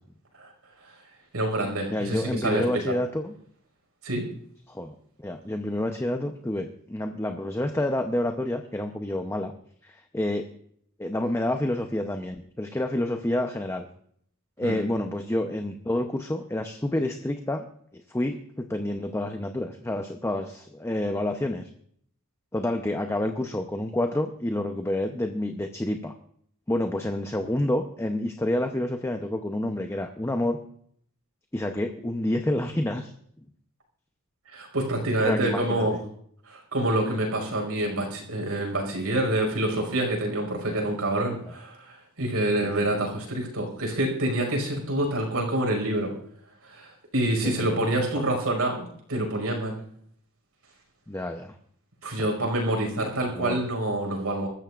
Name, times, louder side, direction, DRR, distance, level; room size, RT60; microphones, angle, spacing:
voice 1, 1.3-2.6 4.0-4.3 14.6-14.8 34.5-36.0 36.5-46.1 46.6-49.7 52.0-54.5, right 1 dB, 75° right, 2 dB, 5.4 m, -27 dB
voice 2, 1.9-3.3 4.7-9.5 9.8-10.5 11.0-13.9 14.6-17.7 17.9-21.7 22.5-26.1 26.7-30.6 31.5-33.1 35.2-36.0 40.7-40.8 42.6-42.9 47.4-47.8 48.3-48.4 51.1-51.5 52.2-52.3 53.3-53.6, left 1 dB, 10° left, 5 dB, 0.8 m, -29 dB
23.5 x 14.0 x 2.5 m, 0.63 s
head